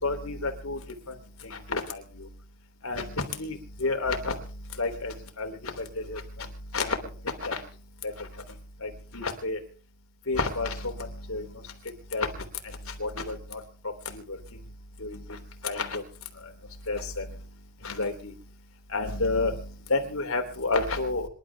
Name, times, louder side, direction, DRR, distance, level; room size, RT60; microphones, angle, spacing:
voice 1, 0.0-0.8 1.4-2.3 2.8-4.4 4.8-6.2 6.7-7.0 7.4-7.6 8.8-9.6 10.3-11.5 12.1-12.3 13.0-13.6 14.0-14.2 15.0-15.4 15.6-16.0 16.9-17.2 17.8-18.3 18.9-21.3, left 3 dB, 75° left, 5 dB, 3.4 m, -30 dB
26.5 x 12.0 x 3.5 m, 0.38 s
head